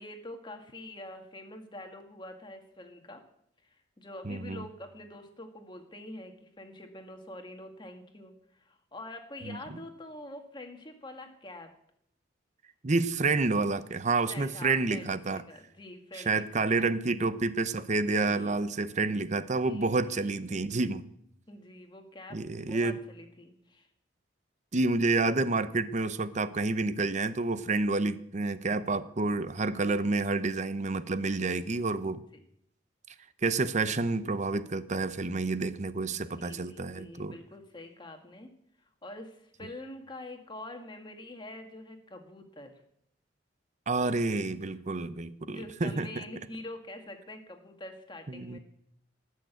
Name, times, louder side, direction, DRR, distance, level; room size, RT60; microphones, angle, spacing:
voice 1, 0.0-3.2 3.6-11.7 14.3-16.9 18.0-18.5 19.7-20.3 21.5-22.4 22.7-23.9 32.3-32.4 36.1-36.2 36.4-38.5 39.0-42.8 45.5-48.6, left 1 dB, 25° left, 4 dB, 1.8 m, -45 dB
voice 2, 4.2-4.6 9.4-9.6 12.8-15.4 16.1-21.1 22.3-23.0 24.7-32.2 33.4-37.3 43.9-46.2 48.3-48.6, right 3 dB, 40° right, 13 dB, 0.7 m, -29 dB
18.0 x 6.5 x 8.1 m, 0.71 s
head